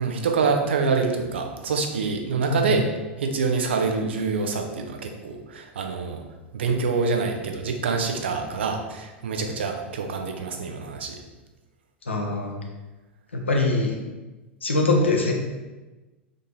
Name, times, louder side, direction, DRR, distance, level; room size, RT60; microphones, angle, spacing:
voice 1, 0.0-2.8 3.2-6.2 6.5-11.2, right 4 dB, 70° right, 4 dB, 0.6 m, -26 dB
voice 2, 2.5-2.8 12.1-12.6 13.3-13.9 14.6-15.3, left 2 dB, 85° left, 1 dB, 0.7 m, -23 dB
3.8 x 2.7 x 3.7 m, 1.1 s
figure-of-eight pair, 90°, 6 cm